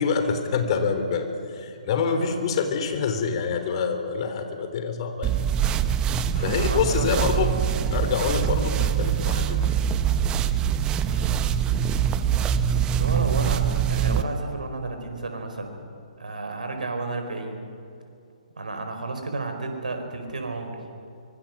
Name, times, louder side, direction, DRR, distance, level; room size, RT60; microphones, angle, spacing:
voice 1, 0.0-5.3 6.3-7.5 7.9-9.8, left 6 dB, 45° left, 7 dB, 3.3 m, -26 dB
voice 2, 2.0-2.6 6.3-7.3 11.1-11.5 12.7-13.6 13.9-15.8 16.2-17.7 18.6-20.8, right 3 dB, 75° right, 5 dB, 4.7 m, -32 dB
sound 1, 5.2-14.2, right 8 dB, 20° right, 0.9 m, -24 dB
24.5 x 23.5 x 6.1 m, 2.6 s
figure-of-eight pair, 130°, 4 cm